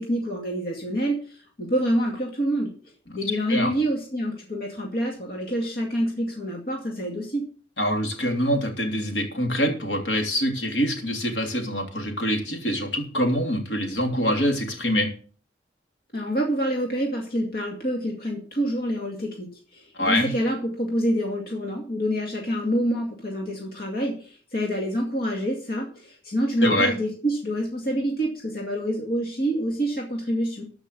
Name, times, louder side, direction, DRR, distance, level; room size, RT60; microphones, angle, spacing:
voice 1, 0.0-2.7 3.1-7.4 16.1-30.6, equal, 55° left, 0 dB, 2.3 m, -27 dB
voice 2, 7.8-15.1 19.9-20.3 26.6-26.9, equal, 75° left, 3 dB, 3.2 m, -25 dB
13.5 x 5.9 x 6.8 m, 0.41 s
head